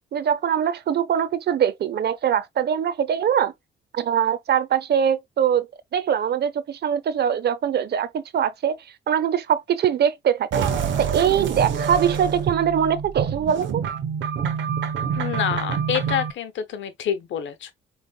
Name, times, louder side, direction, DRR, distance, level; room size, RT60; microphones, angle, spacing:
voice 1, 0.1-3.5 3.9-8.8 9.1-10.6 11.0-13.8, right 8 dB, 55° right, 0.7 m, -22 dB
sound 1, 10.5-16.3, right 7 dB, 70° right, 1.1 m, -26 dB
voice 2, 15.2-17.7, left 9 dB, 75° left, 0.9 m, -27 dB
5.2 x 3.3 x 2.3 m
cardioid pair, 90°, 20 cm